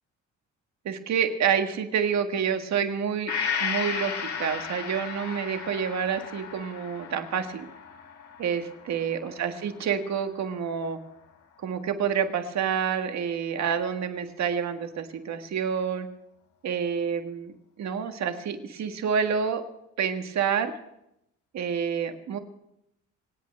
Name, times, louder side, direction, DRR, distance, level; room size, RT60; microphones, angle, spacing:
voice 1, 0.9-3.3 3.6-7.7 8.4-11.0 11.6-16.1 16.6-19.6 20.0-20.7 21.5-22.4, right 7 dB, 65° right, 6 dB, 1.7 m, -28 dB
Gong, 3.3-10.9 11.3-11.4, left 7 dB, 75° left, 2.7 m, -35 dB
25.5 x 8.5 x 5.3 m, 0.81 s
cardioid pair, 90°, 30 cm